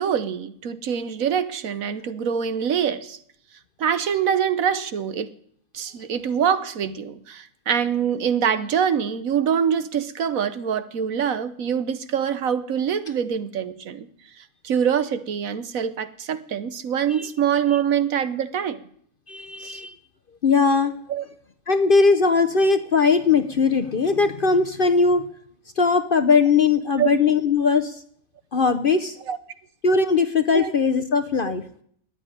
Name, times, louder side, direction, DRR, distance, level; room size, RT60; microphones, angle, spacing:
voice 1, 0.0-3.2 3.8-5.3 5.7-14.1 14.6-18.8 19.6-19.8 21.1-21.2 27.0-27.2 29.3-29.4 30.5-30.7 31.4-31.5, right 8 dB, 70° right, 13 dB, 1.3 m, -24 dB
voice 2, 19.3-19.9 20.4-20.9 21.7-25.3 25.8-28.0 28.5-29.2 29.8-31.6, left 4 dB, 45° left, 10 dB, 0.8 m, -19 dB
13.5 x 9.9 x 9.9 m, 0.64 s
omnidirectional pair, 1.6 m